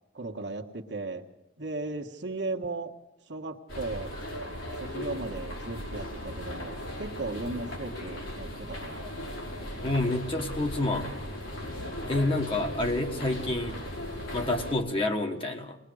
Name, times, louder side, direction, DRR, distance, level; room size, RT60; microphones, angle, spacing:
voice 1, 0.1-1.3 1.6-3.0 3.3-4.1 4.8-9.1, right 3 dB, 55° right, 3 dB, 1.6 m, -36 dB
sound 1, 3.7-14.7, left 1 dB, 75° left, 5.3 m, -37 dB
voice 2, 9.8-11.1 12.1-13.8 14.3-15.8, left 2 dB, 25° left, 3 dB, 1.5 m, -28 dB
21.0 x 21.0 x 6.5 m, 0.86 s
head